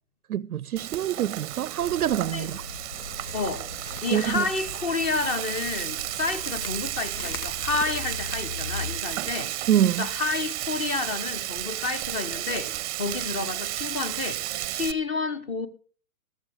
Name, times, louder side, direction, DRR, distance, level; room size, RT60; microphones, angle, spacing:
voice 1, 0.3-2.6 4.1-4.4 9.7-10.1, right 11 dB, 75° right, 0.6 m, -25 dB
Frying (food), 0.8-14.9, right 14 dB, 25° right, 0.7 m, -33 dB
sound 1, 1.8-9.0, left 5 dB, 90° left, 1.2 m, -40 dB
voice 2, 3.3-3.7 4.0-9.5 10.0-14.5 14.7-15.7, left 4 dB, 15° left, 0.8 m, -30 dB
15.0 x 13.0 x 3.5 m
figure-of-eight pair, 130°, 45 cm